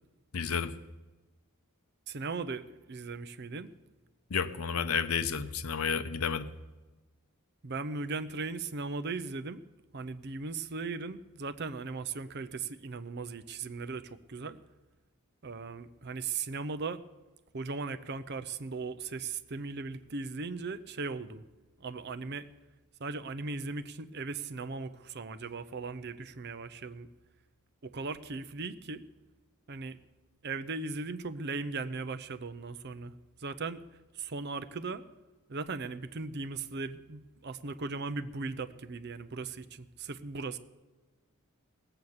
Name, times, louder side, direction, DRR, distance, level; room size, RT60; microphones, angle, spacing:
voice 1, 0.3-0.7 4.3-6.5, left 6 dB, 90° left, 11 dB, 0.7 m, -31 dB
voice 2, 2.1-3.7 7.6-9.6 9.9-14.6 15.4-17.0 17.5-21.4 21.8-22.5 23.0-27.1 27.8-29.0 29.7-30.0 30.4-33.1 33.4-33.8 34.1-35.0 35.5-40.6, right 4 dB, 50° right, 11 dB, 0.7 m, -38 dB
18.0 x 7.9 x 7.2 m, 1.2 s
head